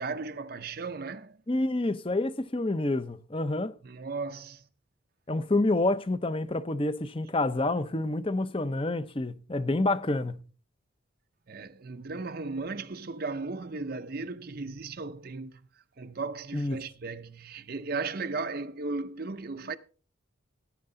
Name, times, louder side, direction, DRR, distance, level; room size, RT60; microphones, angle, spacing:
voice 1, 0.0-1.4 3.8-4.6 11.5-15.6 16.0-19.8, right 3 dB, 45° right, 0.6 m, -36 dB
voice 2, 1.5-3.7 5.3-10.4 16.5-16.8, left 2 dB, 25° left, 0.7 m, -28 dB
18.5 x 9.8 x 3.9 m
head